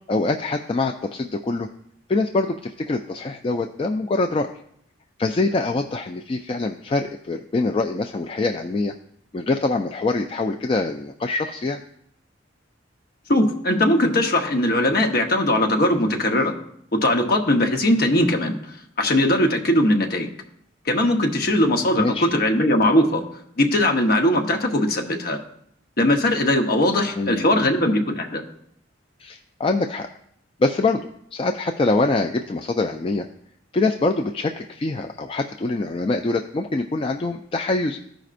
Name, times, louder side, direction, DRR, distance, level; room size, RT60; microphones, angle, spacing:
voice 1, 0.1-1.7 2.1-4.5 5.2-8.9 9.3-11.8 21.9-22.3 27.2-27.7 29.2-30.1 30.6-33.3 33.7-38.0, left 3 dB, 30° left, 5 dB, 0.3 m, -24 dB
voice 2, 13.3-16.5 16.9-18.6 19.0-20.3 20.9-23.2 23.6-25.4 26.0-28.4, left 1 dB, 55° left, 3 dB, 0.9 m, -20 dB
14.5 x 5.1 x 2.5 m, 0.70 s
head